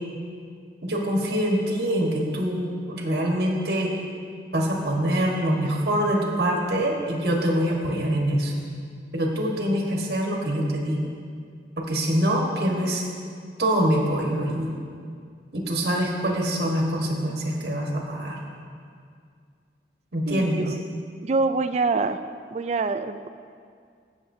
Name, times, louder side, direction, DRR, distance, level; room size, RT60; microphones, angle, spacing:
voice 1, 0.8-3.9 4.5-8.5 9.1-11.1 11.8-13.0 13.6-14.7 15.5-18.4 20.1-20.6, equal, 60° right, -1 dB, 1.4 m, -24 dB
voice 2, 20.3-20.8 21.2-22.2 22.5-23.3, right 3 dB, 35° right, 10 dB, 0.3 m, -25 dB
17.0 x 7.1 x 2.7 m, 2.2 s
head